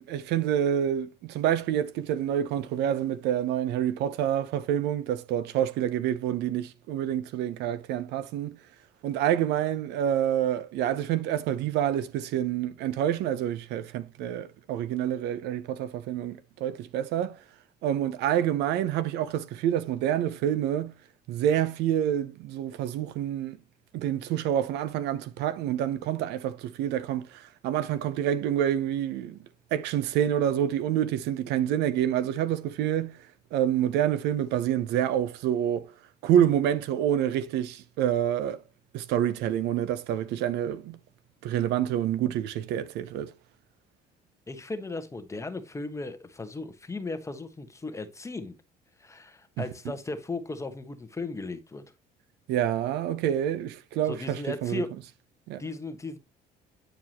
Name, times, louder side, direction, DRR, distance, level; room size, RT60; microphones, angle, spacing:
voice 1, 0.0-8.6 9.0-17.4 17.8-20.9 21.3-23.6 23.9-29.4 29.7-33.2 33.5-35.9 36.2-38.6 38.9-41.0 41.4-43.3 52.5-54.8 55.5-55.6, right 10 dB, 85° right, 0.8 m, -27 dB
voice 2, 44.5-48.5 49.0-51.8 54.1-54.9 55.6-56.2, left 3 dB, 15° left, 1.2 m, -36 dB
9.1 x 4.7 x 3.0 m
cardioid pair, 110°, 17 cm